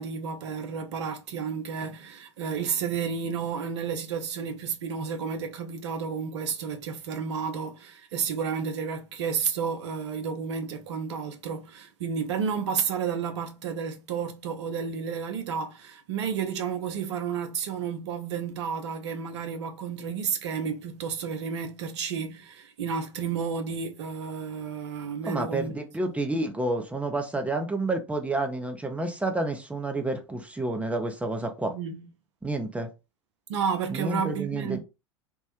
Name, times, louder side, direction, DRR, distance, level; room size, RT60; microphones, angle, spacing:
voice 1, 0.0-25.7 31.7-32.1 33.5-34.8, right 6 dB, 65° right, 0.7 m, -31 dB
voice 2, 25.3-31.7 32.4-32.9 33.9-34.8, right 2 dB, 10° right, 0.6 m, -29 dB
3.5 x 2.1 x 2.9 m
figure-of-eight pair, 75°, 16 cm